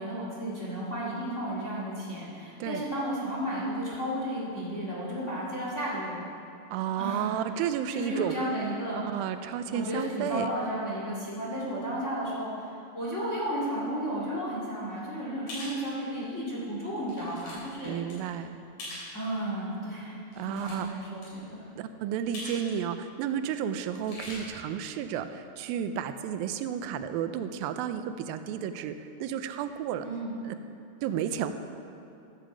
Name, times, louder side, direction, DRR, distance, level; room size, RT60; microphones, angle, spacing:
voice 1, 0.0-6.2 7.0-7.3 7.9-9.1 9.6-18.0 19.1-20.2 20.5-21.7 30.0-30.4, right 1 dB, 25° left, -6 dB, 1.7 m, -33 dB
voice 2, 6.7-8.4 8.9-10.5 17.8-18.6 20.4-20.9 21.8-30.1 30.4-30.6 31.0-31.5, right 9 dB, 90° right, 10 dB, 2.4 m, -32 dB
sound 1, 15.5-15.8 16.4-16.5 17.0-17.6 17.8-18.1 18.8-19.1 20.2-21.0 21.2-21.3 22.3-22.6 22.9-23.0 23.9-24.3, left 1 dB, 85° left, 5.9 m, -41 dB
14.0 x 11.5 x 5.0 m, 2.6 s
omnidirectional pair, 4.1 m